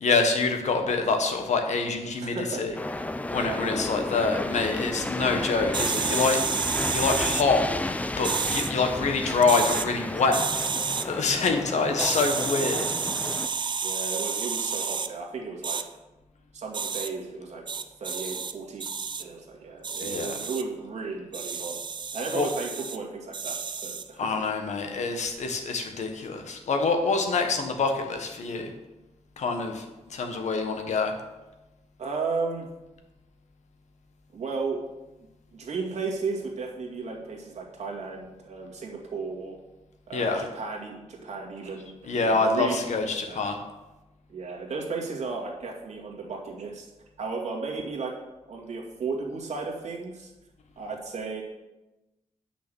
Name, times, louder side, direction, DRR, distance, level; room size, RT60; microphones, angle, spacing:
voice 1, 0.0-2.7 3.3-6.4 6.9-7.7 8.2-10.4 11.0-12.8 20.0-20.4 22.3-22.5 24.2-28.7 29.4-29.8 30.1-31.1 40.1-40.4 42.0-43.6, left 4 dB, 65° left, 4 dB, 1.5 m, -26 dB
voice 2, 2.2-2.7 3.4-3.9 13.8-15.9 16.5-18.9 19.2-21.8 22.1-24.3 32.0-32.7 34.3-34.8 35.5-39.6 40.1-41.9 42.2-42.9 43.1-43.4 44.3-46.9 47.2-48.1 48.5-50.3 50.8-51.4, right 4 dB, 60° right, -1 dB, 2.2 m, -34 dB
sound 1, 2.7-13.5, left 2 dB, 10° left, 0.5 m, -32 dB
sound 2, 5.7-7.5 8.2-8.7 9.4-9.9 10.3-11.1 12.0-15.1 15.6-15.8 16.7-17.1 17.7-18.5 18.8-19.2 19.8-20.6 21.3-23.0 23.3-24.1, right 5 dB, 40° right, 0.6 m, -30 dB
8.5 x 6.2 x 6.3 m, 1.0 s
cardioid pair, 100°, 13 cm